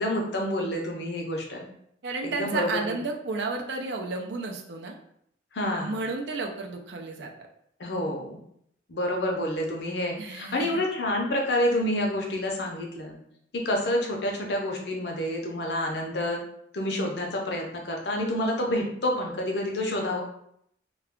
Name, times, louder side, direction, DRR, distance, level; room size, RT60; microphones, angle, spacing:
voice 1, 0.0-1.7 2.2-3.0 5.5-5.9 7.8-8.4 8.9-13.2 13.5-16.4 16.7-20.2, left 1 dB, 60° left, 0 dB, 0.6 m, -28 dB
voice 2, 2.0-4.9 5.8-7.5 10.2-10.8, right 3 dB, 65° right, 2 dB, 0.4 m, -32 dB
2.3 x 2.3 x 3.5 m, 0.71 s
head